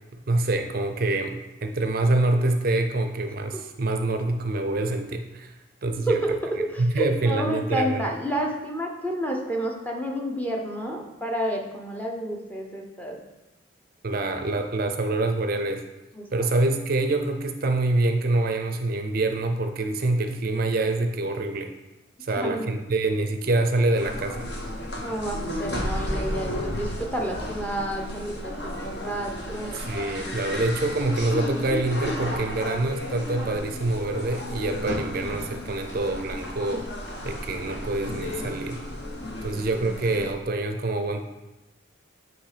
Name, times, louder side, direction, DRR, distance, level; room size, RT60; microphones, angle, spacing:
voice 1, 0.3-6.2 6.8-8.1 14.0-15.8 16.3-21.7 22.2-24.5 29.7-36.9 37.2-38.8 39.4-41.2, right 2 dB, 45° right, 6 dB, 0.5 m, -26 dB
voice 2, 6.1-13.2 16.1-16.5 22.3-22.7 25.0-30.6 31.4-31.7 39.4-40.1, right 1 dB, 10° left, -1 dB, 0.7 m, -30 dB
sound 1, 23.9-40.3, left 1 dB, 55° left, 1.1 m, -33 dB
8.6 x 3.1 x 4.9 m, 1.0 s
head